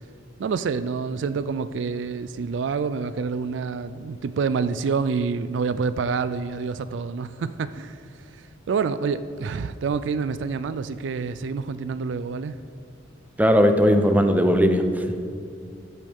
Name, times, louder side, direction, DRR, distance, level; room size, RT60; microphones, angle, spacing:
voice 1, 0.4-8.0 8.3-12.6, right 5 dB, 75° right, 13 dB, 0.4 m, -27 dB
voice 2, 13.4-14.9, equal, 10° right, 6 dB, 0.7 m, -18 dB
14.0 x 8.2 x 3.6 m, 2.4 s
head